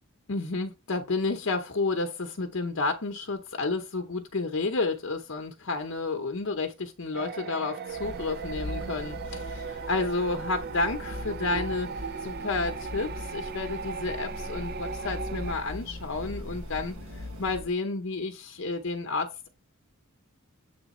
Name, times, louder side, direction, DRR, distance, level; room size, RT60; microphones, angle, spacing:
voice 1, 0.3-19.5, left 3 dB, 60° left, 0.8 m, -31 dB
sound 1, 7.1-15.5, right 5 dB, 45° right, 0.4 m, -37 dB
sound 2, 7.9-17.7, left 1 dB, 75° right, 1.4 m, -40 dB
8.1 x 3.3 x 4.2 m
head